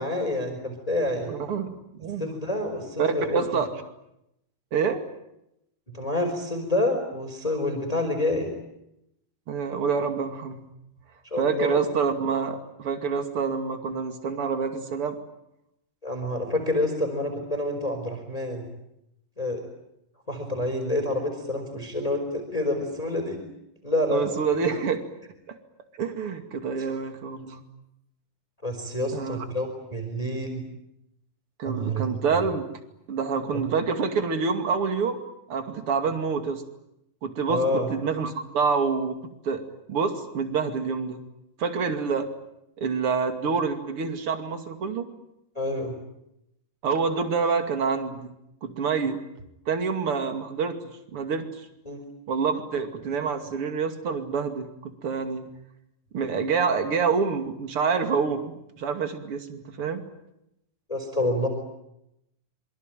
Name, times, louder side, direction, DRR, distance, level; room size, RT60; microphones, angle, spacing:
voice 1, 0.0-1.3 2.2-3.6 5.9-8.5 11.2-11.8 16.0-18.7 19.4-19.6 20.3-23.4 23.8-24.4 26.7-26.9 28.6-30.6 31.6-32.0 37.5-37.9 45.5-45.9 51.9-52.0 60.9-61.5, left 1 dB, 10° left, 4 dB, 4.4 m, -28 dB
voice 2, 1.3-2.3 3.0-3.7 4.7-5.0 9.5-10.7 11.4-15.2 24.1-25.0 25.5-25.6 26.0-27.6 29.1-29.4 31.6-32.6 33.1-35.2 35.5-36.6 37.2-39.6 39.9-41.2 41.6-42.3 42.8-45.1 46.8-48.3 48.6-49.2 49.7-50.8 51.1-51.5 52.3-55.4 56.1-60.0, right 5 dB, 45° right, 7 dB, 3.1 m, -27 dB
26.5 x 24.5 x 9.2 m, 0.83 s
omnidirectional pair, 3.9 m